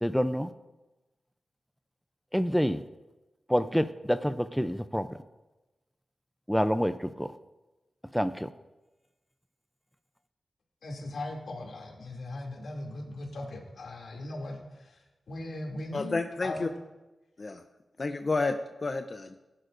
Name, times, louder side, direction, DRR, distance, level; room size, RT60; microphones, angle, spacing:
voice 1, 0.0-0.5 2.3-2.8 3.5-5.1 6.5-7.3 8.1-8.5, equal, ahead, 0.5 m, -27 dB
voice 2, 10.8-16.7, left 2 dB, 85° left, 2.7 m, -39 dB
voice 3, 15.9-16.7 17.4-17.6 18.0-18.6 18.8-19.4, left 3 dB, 40° left, 0.6 m, -30 dB
21.0 x 11.0 x 2.6 m
wide cardioid pair, 100°, 0 cm